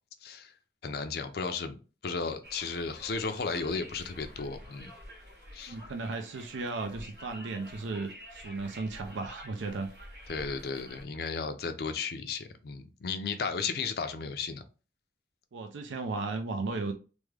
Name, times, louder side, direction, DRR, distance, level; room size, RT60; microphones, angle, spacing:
voice 1, 0.2-0.5 0.8-1.8 2.0-4.9 5.5-5.8 10.3-14.6, left 4 dB, 55° left, 0.4 m, -34 dB
Conversation, 2.4-11.0, equal, 55° right, 1.7 m, -49 dB
voice 2, 5.7-9.9 15.5-16.9, right 3 dB, 85° right, 0.5 m, -35 dB
3.4 x 2.1 x 3.2 m
head